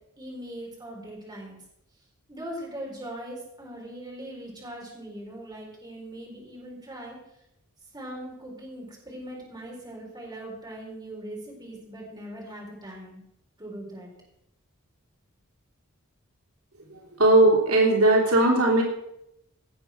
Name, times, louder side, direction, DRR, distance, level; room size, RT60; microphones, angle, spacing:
voice 1, 0.2-1.6 2.3-7.2 7.9-13.2 13.6-14.1, right 1 dB, 20° right, -2 dB, 4.5 m, -40 dB
voice 2, 17.2-18.8, right 2 dB, 75° right, -1 dB, 3.4 m, -18 dB
17.5 x 7.9 x 6.0 m, 0.80 s
head